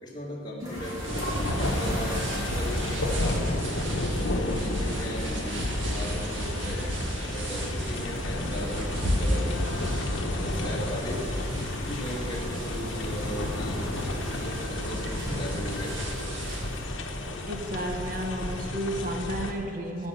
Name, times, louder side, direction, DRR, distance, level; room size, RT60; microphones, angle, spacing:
voice 1, 0.0-2.8 3.1-3.7 4.0-6.9 7.3-9.6 10.3-11.3 11.9-13.8 14.3-16.0, equal, 20° left, -4 dB, 2.0 m, -37 dB
sound 1, 0.6-19.5, equal, 20° right, 2.9 m, -43 dB
sound 2, 0.7-16.7, equal, 70° right, 1.7 m, -34 dB
sound 3, 1.1-19.5, left 1 dB, 70° left, 1.1 m, -32 dB
voice 2, 17.5-20.1, right 1 dB, 45° right, 2 dB, 1.1 m, -32 dB
9.7 x 9.5 x 7.1 m, 2.5 s
head